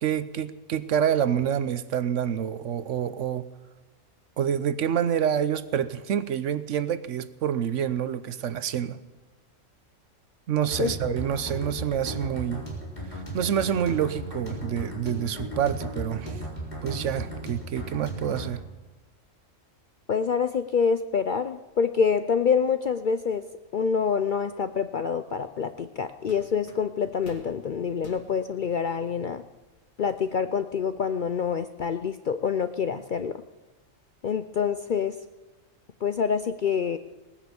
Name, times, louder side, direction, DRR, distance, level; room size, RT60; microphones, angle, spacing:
voice 1, 0.0-3.5 4.4-9.0 10.5-12.6 13.1-16.4 16.8-18.6, right 9 dB, 70° right, 14 dB, 1.0 m, -27 dB
sound 1, 10.6-18.4, right 1 dB, 35° left, 3.9 m, -36 dB
voice 2, 20.1-23.4 23.7-29.4 30.0-33.4 34.2-35.2 36.0-37.0, left 6 dB, 55° left, 10 dB, 0.5 m, -26 dB
sound 2, 25.6-25.8 26.3-27.5 28.0-28.3 29.0-29.1 29.5-30.3, left 2 dB, 90° left, 3.1 m, -48 dB
18.5 x 9.9 x 7.0 m, 1.2 s
omnidirectional pair, 1.4 m